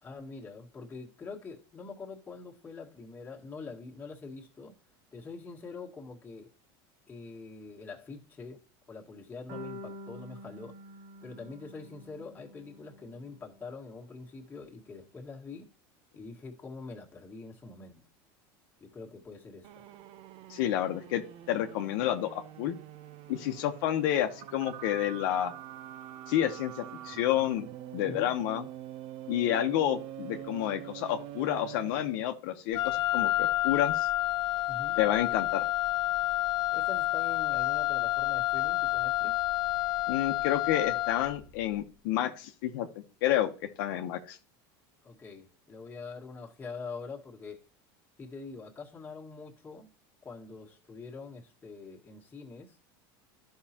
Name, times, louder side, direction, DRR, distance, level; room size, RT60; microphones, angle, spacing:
voice 1, 0.0-4.7 5.1-6.5 7.1-8.6 8.9-10.8 11.2-15.7 16.1-18.0 18.8-19.9 28.0-28.3 34.7-35.0 36.7-39.4 45.0-47.6 48.2-49.9 50.2-52.8, left 4 dB, 15° left, 1.7 m, -44 dB
sound 1, 9.5-13.6, equal, 70° right, 3.3 m, -47 dB
sound 2, 19.6-32.4, right 12 dB, 50° right, 0.7 m, -45 dB
voice 2, 20.5-21.2 21.5-22.8 23.3-25.5 26.3-27.7 27.9-28.6 29.3-34.1 35.0-35.6 40.1-42.9 43.2-44.4, left 12 dB, 70° left, 1.0 m, -29 dB
Wind instrument woodwind instrument, 32.7-41.4, left 16 dB, 45° left, 0.9 m, -29 dB
12.0 x 5.6 x 2.9 m
supercardioid pair, 130°, 12 cm